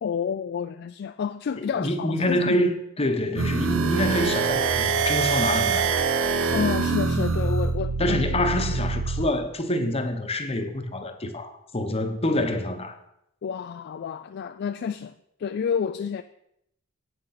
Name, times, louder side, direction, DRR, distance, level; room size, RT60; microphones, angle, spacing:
voice 1, 0.0-2.6 6.5-8.2 12.1-12.2 13.4-15.1 15.4-16.2, left 7 dB, 50° left, 0.3 m, -29 dB
voice 2, 1.6-6.0 8.0-12.9, left 1 dB, 30° left, 0.9 m, -26 dB
sound 1, 3.4-9.3, right 5 dB, 70° right, 0.7 m, -24 dB
8.3 x 6.5 x 5.8 m
head